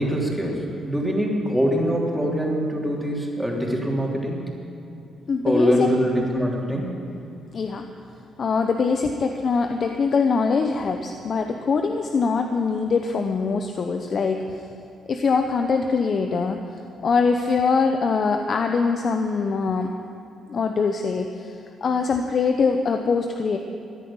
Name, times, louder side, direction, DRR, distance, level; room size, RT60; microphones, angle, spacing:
voice 1, 0.0-4.4 5.4-6.9, equal, 5° right, -3 dB, 3.4 m, -23 dB
voice 2, 5.3-5.9 7.5-7.9 8.4-14.6 15.1-16.6 17.0-19.9 20.5-21.6 21.8-23.6, left 5 dB, 50° left, 5 dB, 0.8 m, -23 dB
15.0 x 10.0 x 8.8 m, 2.6 s
cardioid pair, 90°, 0 cm